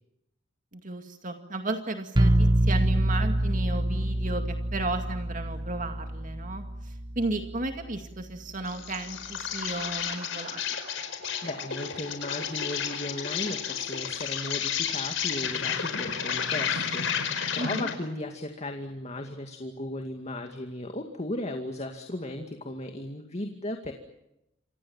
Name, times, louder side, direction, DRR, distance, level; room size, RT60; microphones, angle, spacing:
voice 1, 0.7-10.6 17.5-17.9, right 2 dB, 45° right, 5 dB, 2.2 m, -34 dB
sound 1, 2.2-7.9, right 1 dB, 25° right, 1.0 m, -26 dB
Insect, 8.7-18.0, left 7 dB, 75° left, 4.6 m, -32 dB
voice 2, 11.4-23.9, left 1 dB, 35° left, 4 dB, 2.2 m, -36 dB
29.0 x 25.5 x 7.3 m, 0.87 s
head